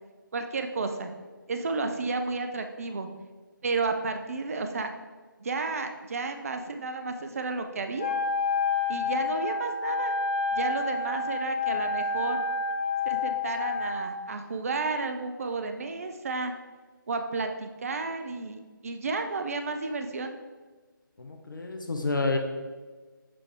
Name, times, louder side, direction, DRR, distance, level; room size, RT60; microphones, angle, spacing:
voice 1, 0.3-1.1 1.5-3.1 3.6-4.9 5.4-8.1 8.9-10.1 10.5-12.4 13.1-16.5 17.1-20.3, right 3 dB, 40° right, 6 dB, 0.5 m, -32 dB
Wind instrument woodwind instrument, 8.0-14.1, left 4 dB, 30° left, 0.7 m, -29 dB
voice 2, 21.2-22.4, left 3 dB, 65° left, 3 dB, 0.9 m, -29 dB
7.5 x 3.4 x 4.9 m, 1.4 s
figure-of-eight pair, 155°, 12 cm